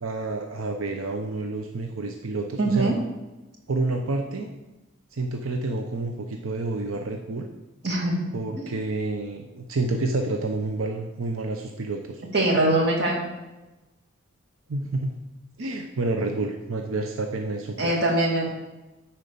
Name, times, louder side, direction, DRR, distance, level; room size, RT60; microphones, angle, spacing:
voice 1, 0.0-2.9 3.7-4.5 5.1-7.5 8.3-12.2 14.7-15.2 15.6-18.0, right 2 dB, 90° right, 3 dB, 0.7 m, -29 dB
voice 2, 2.6-3.0 7.8-8.3 8.6-8.7 12.3-13.2 17.8-18.5, right 2 dB, 55° right, -2 dB, 2.2 m, -22 dB
9.4 x 4.4 x 6.7 m, 1.1 s
head